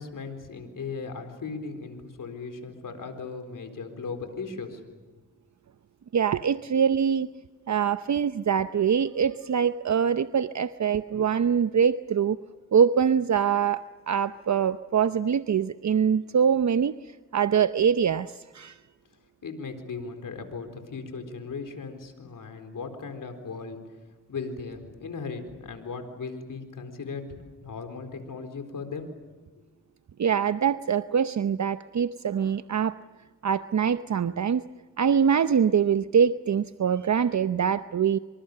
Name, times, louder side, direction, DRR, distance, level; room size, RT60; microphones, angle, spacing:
voice 1, 0.0-4.8 19.4-23.8 24.3-29.1, left 4 dB, 80° left, 7 dB, 4.2 m, -37 dB
voice 2, 6.1-7.3 7.7-12.4 12.7-18.8 30.2-33.0 33.4-34.7 35.0-38.2, right 7 dB, 60° right, 12 dB, 0.8 m, -24 dB
26.5 x 26.0 x 6.7 m, 1.3 s
cardioid pair, 50°, 32 cm